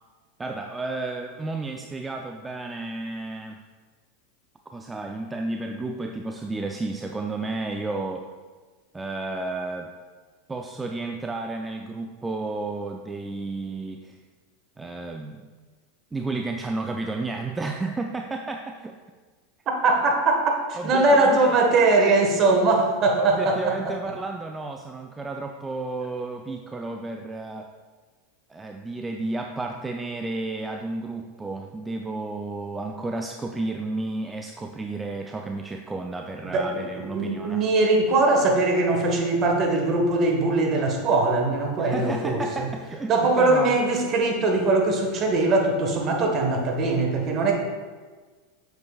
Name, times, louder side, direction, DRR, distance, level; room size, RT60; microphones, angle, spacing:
voice 1, 0.4-3.6 4.7-8.3 8.9-9.9 10.5-14.2 14.8-15.5 16.1-19.0 20.8-21.5 23.2-27.7 28.5-37.6 41.8-43.8, right 2 dB, 15° right, 3 dB, 0.4 m, -32 dB
voice 2, 19.8-24.0 36.4-36.7 36.9-42.7 43.1-47.5, right 2 dB, 40° right, 2 dB, 1.4 m, -21 dB
8.0 x 6.8 x 2.4 m, 1.4 s
hypercardioid pair, 105°, 0 cm